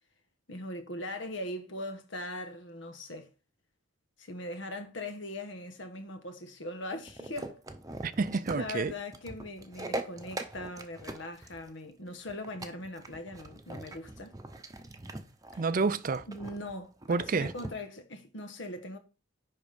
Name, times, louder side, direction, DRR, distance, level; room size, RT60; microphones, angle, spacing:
voice 1, 0.5-3.3 4.2-7.6 8.5-14.4 15.5-15.6 16.3-19.0, left 1 dB, 70° left, 1.3 m, -40 dB
sound 1, 7.1-17.7, right 2 dB, 20° right, 0.8 m, -42 dB
voice 2, 8.0-8.9 15.6-16.3 17.1-17.5, right 4 dB, 45° right, 0.5 m, -29 dB
10.5 x 3.7 x 5.1 m
head